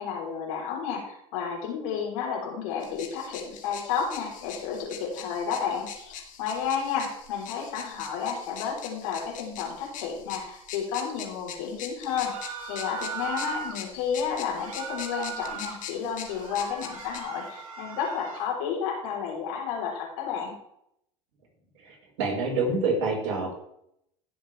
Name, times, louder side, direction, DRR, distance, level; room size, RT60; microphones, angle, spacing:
voice 1, 0.0-20.6, left 7 dB, 70° left, 0 dB, 4.1 m, -31 dB
sound 1, 2.8-17.2, left 8 dB, 45° left, 2.3 m, -43 dB
sound 2, 12.1-13.8 14.5-15.8 16.2-18.5, right 6 dB, 85° right, 2.1 m, -38 dB
voice 2, 21.8-23.5, right 3 dB, 70° right, -1 dB, 5.1 m, -27 dB
17.0 x 7.4 x 3.5 m, 0.74 s
hypercardioid pair, 80°, 18 cm